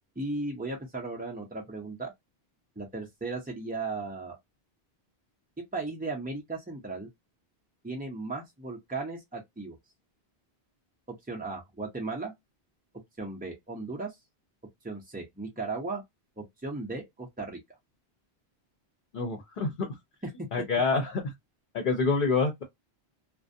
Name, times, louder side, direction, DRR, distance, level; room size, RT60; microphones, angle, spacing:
voice 1, 0.2-2.1 2.8-4.4 5.7-7.1 7.8-9.8 11.1-12.3 13.2-14.2 14.8-16.0 16.4-17.6, right 3 dB, 15° right, 0.3 m, -36 dB
voice 2, 19.1-20.0 20.5-21.3 21.7-22.6, left 4 dB, 55° left, 0.7 m, -27 dB
2.5 x 2.1 x 2.6 m
omnidirectional pair, 1.1 m